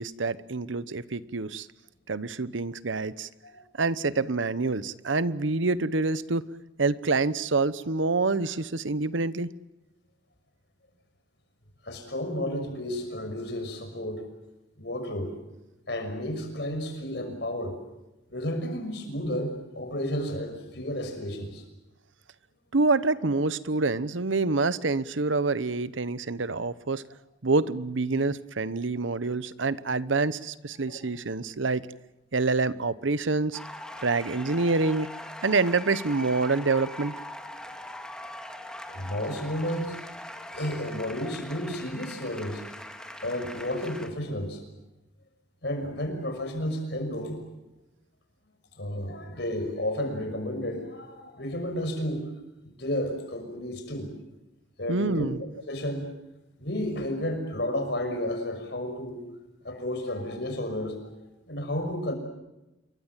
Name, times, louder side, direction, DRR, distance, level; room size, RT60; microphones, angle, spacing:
voice 1, 0.0-1.7 2.1-3.3 3.8-6.4 6.8-9.5 22.7-27.0 27.4-31.9 32.3-33.6 34.0-35.1 35.4-37.1 54.9-55.4, right 3 dB, 85° right, 16 dB, 1.0 m, -26 dB
voice 2, 11.8-14.2 14.8-15.3 15.9-17.8 18.3-21.6 30.8-31.0 38.9-40.0 40.5-42.6 43.0-44.6 45.6-47.4 48.8-52.3 52.6-54.1 54.8-55.3 55.7-56.1 56.6-59.2 59.6-61.0 61.5-62.1, left 1 dB, 60° left, 6 dB, 6.0 m, -32 dB
sound 1, 33.5-44.1, left 1 dB, 5° left, 2.0 m, -41 dB
27.5 x 23.0 x 7.5 m, 0.96 s
head